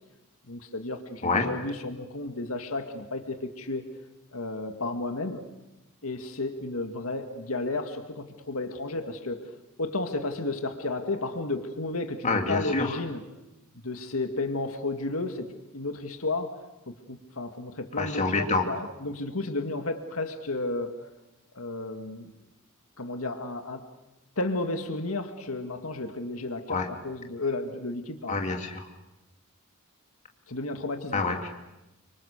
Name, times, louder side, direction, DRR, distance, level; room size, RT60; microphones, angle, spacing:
voice 1, 0.5-3.9 4.3-5.4 6.0-9.4 9.8-13.2 13.7-16.6 16.9-20.9 21.5-22.3 23.0-23.8 24.4-28.4 30.5-31.4, left 2 dB, 85° left, 6 dB, 2.1 m, -32 dB
voice 2, 12.2-12.9 18.0-18.7 26.7-26.9 28.3-28.9 31.1-31.5, left 3 dB, 35° left, 3 dB, 2.7 m, -27 dB
30.0 x 25.5 x 6.7 m, 0.99 s
head